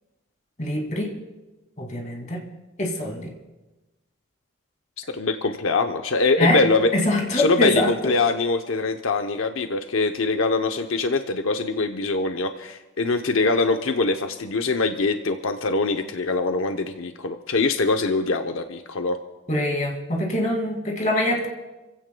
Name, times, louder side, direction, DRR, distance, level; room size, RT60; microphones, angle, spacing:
voice 1, 0.6-1.2 1.8-2.4 2.8-3.3 6.4-6.6 6.9-7.9 19.5-21.5, left 1 dB, 40° left, 0 dB, 2.4 m, -24 dB
voice 2, 5.1-6.9 7.3-19.2, left 3 dB, 85° left, 6 dB, 0.8 m, -23 dB
29.0 x 16.0 x 2.3 m, 1.1 s
head